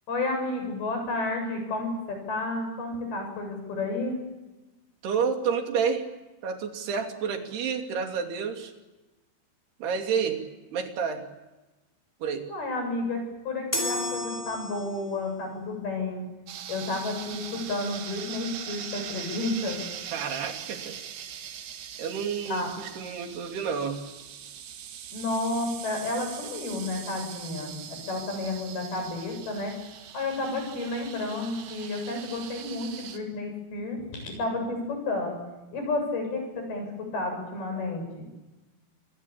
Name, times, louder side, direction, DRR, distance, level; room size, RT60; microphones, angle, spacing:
voice 1, 0.1-4.2 12.5-16.3 16.7-19.8 22.5-22.7 25.1-29.7 30.1-35.4 35.7-38.1, left 2 dB, 65° left, 4 dB, 9.5 m, -31 dB
voice 2, 5.0-6.1 6.4-8.7 9.8-10.4 10.7-11.3 12.2-12.5 20.1-21.0 22.0-24.0, right 6 dB, 70° right, 4 dB, 4.7 m, -29 dB
sound 1, 13.7-15.2, left 1 dB, 5° left, 3.5 m, -32 dB
sound 2, 16.5-33.2, right 9 dB, 85° right, 4.1 m, -41 dB
27.0 x 22.5 x 8.8 m, 1.1 s
omnidirectional pair, 4.8 m